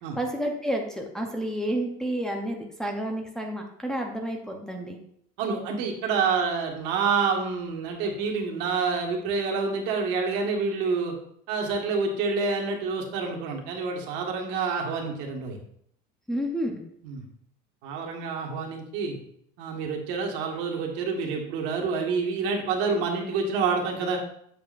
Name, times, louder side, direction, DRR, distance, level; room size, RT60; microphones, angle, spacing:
voice 1, 0.1-5.0 16.3-16.8, right 1 dB, 5° left, 0 dB, 0.8 m, -30 dB
voice 2, 5.4-11.1 11.5-15.6 17.0-17.2 17.8-19.2 19.6-24.2, right 5 dB, 65° right, 0 dB, 1.8 m, -28 dB
8.5 x 7.3 x 2.6 m, 0.71 s
cardioid pair, 145°, 20 cm